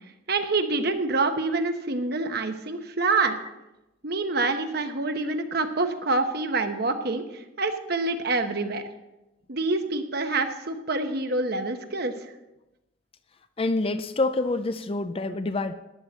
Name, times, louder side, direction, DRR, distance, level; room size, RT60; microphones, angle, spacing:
voice 1, 0.3-3.4 4.0-8.8 9.5-12.1, right 3 dB, 50° right, 7 dB, 1.0 m, -26 dB
voice 2, 13.6-15.7, left 2 dB, 25° left, 11 dB, 0.5 m, -27 dB
14.5 x 10.5 x 4.1 m, 0.97 s
head